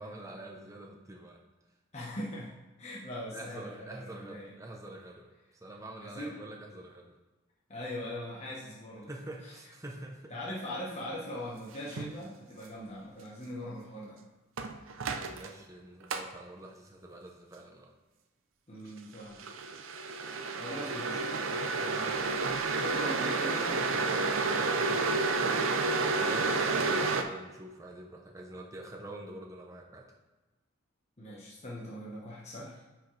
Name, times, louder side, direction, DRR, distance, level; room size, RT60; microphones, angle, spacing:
voice 1, 0.0-1.4 3.3-7.1 9.0-10.4 15.3-17.9 26.2-30.1, right 1 dB, 15° right, 0 dB, 0.6 m, -46 dB
voice 2, 1.9-2.5 2.8-4.5 6.0-6.3 7.7-9.1 9.4-9.5 10.3-14.2 18.7-19.4 20.5-22.3 22.8-25.1 31.2-32.8, left 1 dB, 35° left, -5 dB, 1.1 m, -41 dB
sound 1, 11.9-12.1 14.6-15.5 16.1-16.2 19.4-27.2, right 3 dB, 80° right, 0.6 m, -30 dB
9.4 x 4.7 x 3.2 m, 1.1 s
head